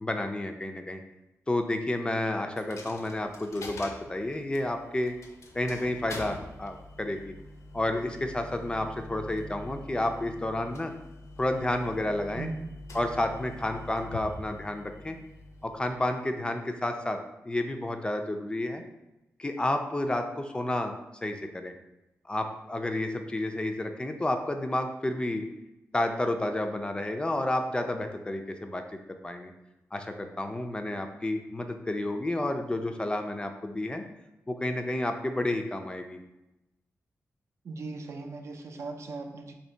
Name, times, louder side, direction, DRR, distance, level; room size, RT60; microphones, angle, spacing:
voice 1, 0.0-1.0 1.5-5.1 5.5-7.3 7.7-10.9 11.4-12.5 12.9-15.2 15.6-18.8 19.4-21.7 22.3-25.4 25.9-28.8 29.2-29.5 29.9-34.0 34.5-36.2, left 1 dB, 20° left, 5 dB, 0.3 m, -30 dB
Coin (dropping), 2.6-16.3, left 1 dB, 70° left, 0.5 m, -45 dB
voice 2, 12.4-12.7 37.6-39.5, right 3 dB, 65° right, 3 dB, 0.5 m, -38 dB
2.8 x 2.7 x 4.3 m, 0.95 s
wide cardioid pair, 105°, 5 cm